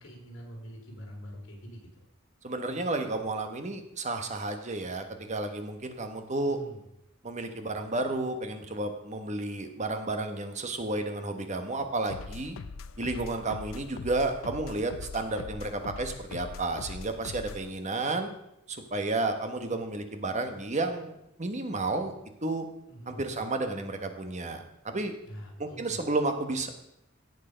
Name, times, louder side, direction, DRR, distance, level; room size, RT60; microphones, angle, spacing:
voice 1, 0.0-2.0 6.5-6.8 22.9-23.2 25.3-26.0, equal, 70° left, -1 dB, 3.8 m, -45 dB
voice 2, 2.4-6.6 7.2-12.6 13.0-18.3 18.7-22.1 22.4-22.7 23.1-25.1 25.6-26.7, right 2 dB, 35° right, 6 dB, 1.2 m, -32 dB
sound 1, 12.1-17.7, left 4 dB, 90° left, 0.5 m, -42 dB
17.0 x 6.7 x 5.1 m, 0.82 s
head